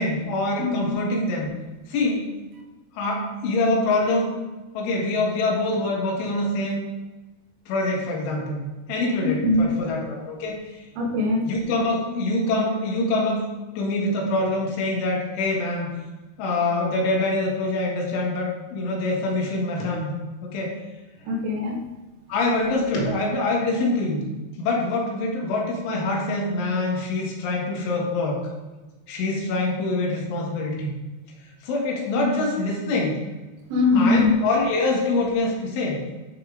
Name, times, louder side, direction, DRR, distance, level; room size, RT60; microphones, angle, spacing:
voice 1, 0.0-1.5 1.9-2.3 3.0-4.4 4.7-6.8 7.7-10.8 11.5-13.4 13.8-15.9 16.4-20.2 20.4-20.8 22.3-24.3 24.6-28.4 29.1-30.9 31.6-33.2 34.0-36.0, left 2 dB, 90° left, -1 dB, 4.2 m, -25 dB
voice 2, 0.6-0.9 9.2-9.8 11.0-11.5 21.3-21.9 33.7-34.4, left 3 dB, 80° right, 2 dB, 3.3 m, -22 dB
11.5 x 4.8 x 4.9 m, 1.2 s
omnidirectional pair, 5.3 m